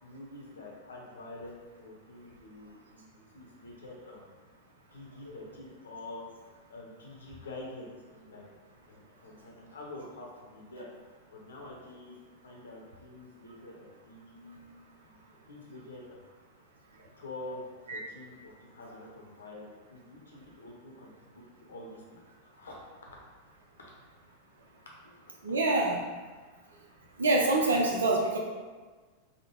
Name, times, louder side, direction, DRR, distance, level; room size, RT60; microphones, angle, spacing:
voice 1, 0.0-4.3 4.9-6.2 6.7-8.5 8.9-10.9 11.3-12.2 12.4-16.2 17.2-17.6 17.9-21.1 21.6-22.8 23.8-23.9, left 2 dB, 65° left, -2 dB, 0.7 m, -47 dB
voice 2, 25.4-26.0 27.2-28.4, right 2 dB, 70° right, -1 dB, 0.5 m, -25 dB
3.5 x 2.1 x 3.0 m, 1.4 s
figure-of-eight pair, 90°, 0 cm